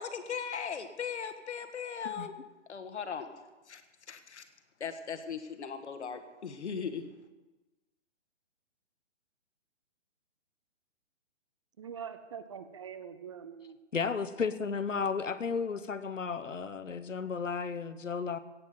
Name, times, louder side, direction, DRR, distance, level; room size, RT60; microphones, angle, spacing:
voice 1, 0.0-2.3 2.7-3.3 3.7-3.8 4.1-4.4 4.8-7.1, left 6 dB, 65° left, 8 dB, 1.8 m, -38 dB
voice 2, 11.8-13.8, right 7 dB, 25° right, 11 dB, 0.5 m, -44 dB
voice 3, 13.9-18.4, left 5 dB, 90° left, 12 dB, 1.0 m, -33 dB
16.5 x 6.2 x 7.7 m, 1.1 s
figure-of-eight pair, 140°, 37 cm